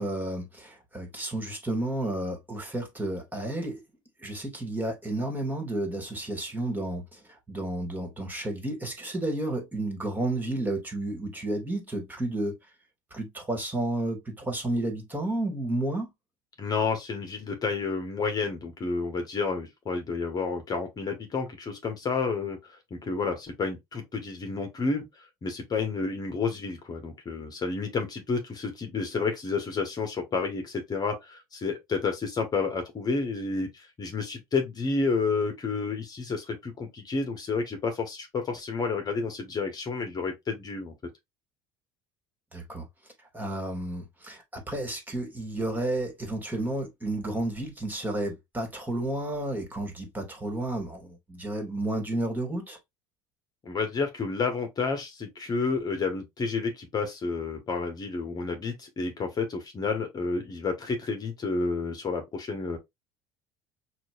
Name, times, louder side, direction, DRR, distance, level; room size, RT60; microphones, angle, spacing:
voice 1, 0.0-3.8 4.2-12.6 13.1-16.1 42.5-42.9 43.3-52.8, right 1 dB, 15° right, 2.1 m, -31 dB
voice 2, 16.6-40.9 53.6-62.8, left 4 dB, 35° left, 1.3 m, -30 dB
5.9 x 2.6 x 2.4 m
hypercardioid pair, 70°, 12 cm